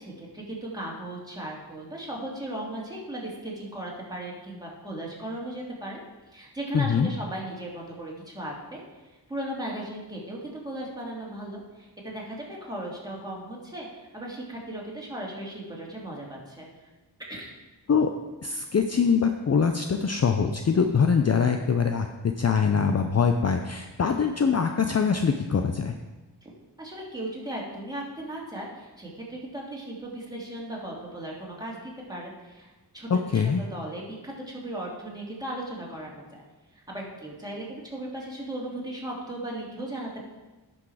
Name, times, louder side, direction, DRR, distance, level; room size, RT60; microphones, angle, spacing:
voice 1, 0.0-6.0 6.3-8.8 9.3-16.7 17.3-17.6 26.4-26.5 26.8-36.4 36.7-40.2, right 1 dB, 10° right, -4 dB, 2.8 m, -37 dB
voice 2, 6.7-7.1 17.9-18.1 18.4-22.1 22.4-25.9 33.1-33.6, left 6 dB, 40° left, 6 dB, 0.6 m, -23 dB
10.5 x 6.2 x 4.9 m, 1.2 s
cardioid pair, 75°, 42 cm